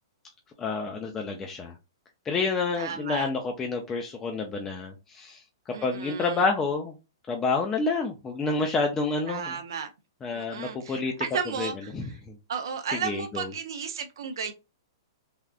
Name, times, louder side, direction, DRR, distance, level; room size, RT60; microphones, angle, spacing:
voice 1, 0.6-1.7 2.3-6.9 7.3-9.6 10.2-11.1 11.6-12.4 13.0-13.5, left 3 dB, 20° left, 0.5 m, -29 dB
voice 2, 2.8-3.3 5.7-6.4 9.3-9.9 10.3-11.9 12.5-14.5, right 6 dB, 75° right, 0.6 m, -34 dB
3.4 x 2.4 x 2.3 m
hypercardioid pair, 135°, 2 cm